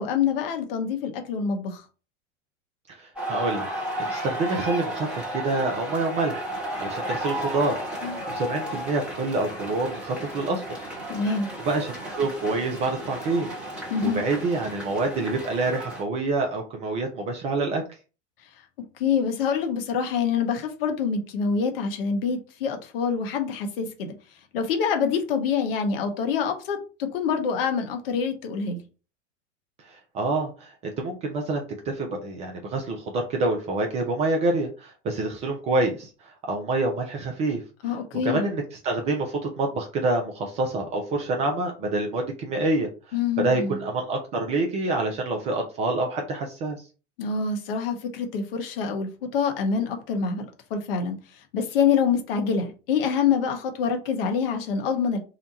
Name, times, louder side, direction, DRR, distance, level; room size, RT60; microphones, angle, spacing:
voice 1, 0.0-1.8 8.0-8.2 11.1-11.5 13.9-14.2 19.0-24.1 24.5-28.8 37.8-38.5 43.1-43.8 47.2-51.2 51.5-55.2, left 6 dB, 50° left, 0.7 m, -26 dB
voice 2, 2.9-10.8 11.7-13.5 13.7-17.8 29.8-37.6 38.2-46.9, right 2 dB, 20° right, 0.4 m, -27 dB
sound 1, 3.2-16.0, right 1 dB, 5° right, 1.1 m, -33 dB
2.9 x 2.1 x 3.9 m
figure-of-eight pair, 90°, 37 cm